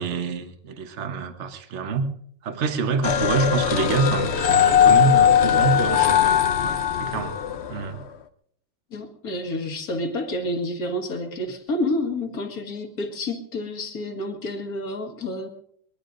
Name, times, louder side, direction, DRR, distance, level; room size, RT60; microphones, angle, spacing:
voice 1, 0.0-2.1 2.4-7.4 7.7-8.0, right 4 dB, 40° right, 7 dB, 1.3 m, -26 dB
sound 1, 3.0-7.9, left 9 dB, 70° left, 0.6 m, -19 dB
voice 2, 8.9-15.5, left 1 dB, 50° left, 5 dB, 2.0 m, -29 dB
22.5 x 21.0 x 2.6 m, 0.66 s
omnidirectional pair, 2.1 m